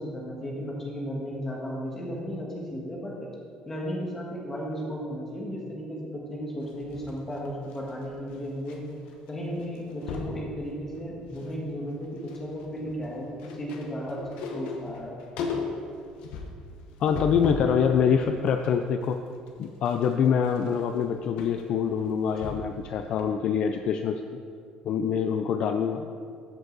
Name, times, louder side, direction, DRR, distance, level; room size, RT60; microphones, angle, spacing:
voice 1, 0.0-3.3 3.7-8.8 9.3-15.2, equal, 15° left, -3 dB, 1.5 m, -35 dB
sound 1, 6.6-8.8 9.0-9.3 9.6-10.4 10.9-11.6 11.9-17.8 18.2-22.8 23.2-23.3, left 4 dB, 70° left, 1.0 m, -38 dB
voice 2, 17.0-19.2 19.6-24.2 24.8-26.1, left 7 dB, 45° left, 6 dB, 0.4 m, -25 dB
13.5 x 5.2 x 3.9 m, 2.3 s
cardioid pair, 170°, 2 cm